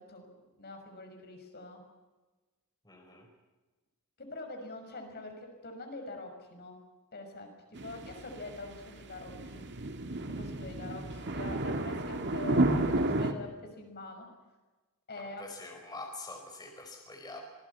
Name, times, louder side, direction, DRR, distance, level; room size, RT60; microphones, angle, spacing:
voice 1, 0.6-1.8 4.2-6.8 7.1-7.5 7.8-9.7 10.3-14.3 15.1-15.4, left 2 dB, 45° left, 4 dB, 6.0 m, -44 dB
voice 2, 2.8-3.3 15.4-17.4, left 2 dB, 20° left, 2 dB, 5.0 m, -45 dB
sound 1, 7.7-13.3, right 2 dB, 55° right, 2.1 m, -31 dB
26.5 x 20.0 x 8.5 m, 1.2 s
head